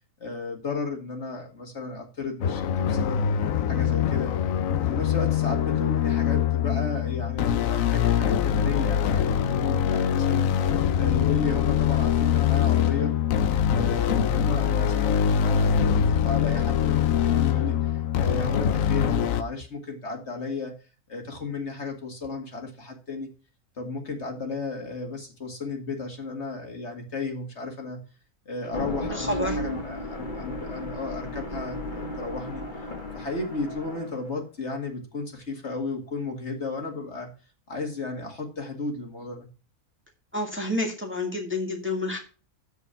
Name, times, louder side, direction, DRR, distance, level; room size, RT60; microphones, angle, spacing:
voice 1, 0.2-3.2 3.7-4.4 4.8-13.2 13.7-16.0 16.2-20.7 21.1-23.3 23.8-28.0 28.5-32.8 33.1-37.3 37.7-39.5, left 3 dB, 50° left, 3 dB, 2.3 m, -34 dB
sound 1, 2.4-19.4, left 8 dB, 70° left, 1.1 m, -23 dB
sound 2, 28.6-34.3, left 1 dB, 35° left, 1.8 m, -34 dB
voice 2, 29.1-29.5 40.3-42.2, left 2 dB, 10° right, 2 dB, 1.8 m, -29 dB
13.5 x 4.8 x 5.6 m, 0.34 s
omnidirectional pair, 1.5 m